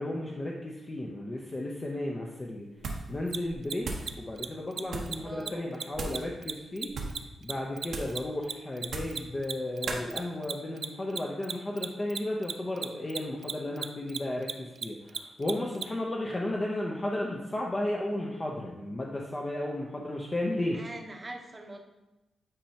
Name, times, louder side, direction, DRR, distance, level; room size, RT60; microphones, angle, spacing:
voice 1, 0.0-2.7 3.1-3.9 4.2-6.9 7.4-20.8, left 1 dB, 25° left, -1 dB, 0.7 m, -34 dB
sound 1, 2.8-3.2 3.4-4.1 4.8-5.2 5.9-6.3 6.9-7.2 7.9-8.2 8.8-9.2 9.9-10.1, right 3 dB, 85° right, 0.9 m, -37 dB
Mechanisms, 3.3-3.4 3.6-3.7 4.0-4.1 4.4-4.5 4.7-4.8 5.1-5.2 5.4-5.5 5.8-8.5 8.8-15.8, right 7 dB, 65° right, 0.3 m, -35 dB
voice 2, 5.2-5.7 20.7-21.8, right 2 dB, 20° right, 3 dB, 0.8 m, -42 dB
8.8 x 4.4 x 2.8 m, 1.0 s
wide cardioid pair, 110°, 0 cm